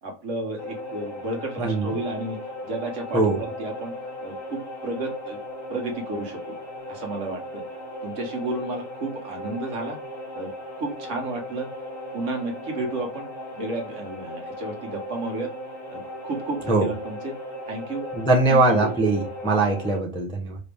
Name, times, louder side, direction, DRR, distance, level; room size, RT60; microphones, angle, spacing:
voice 1, 0.0-2.4 2.6-3.9 4.2-5.4 5.7-6.6 6.9-7.6 8.0-10.0 10.3-10.5 10.8-11.7 12.1-13.3 13.5-15.5 15.9-17.4 17.6-18.1 18.5-19.0, right 2 dB, 60° right, 2 dB, 1.4 m, -32 dB
sound 1, 0.6-20.0, left 1 dB, 65° left, 1.8 m, -37 dB
voice 2, 1.6-1.9 3.1-3.4 16.7-16.9 18.1-20.6, right 2 dB, 5° left, -1 dB, 0.6 m, -21 dB
5.0 x 2.7 x 3.4 m, 0.35 s
omnidirectional pair, 1.5 m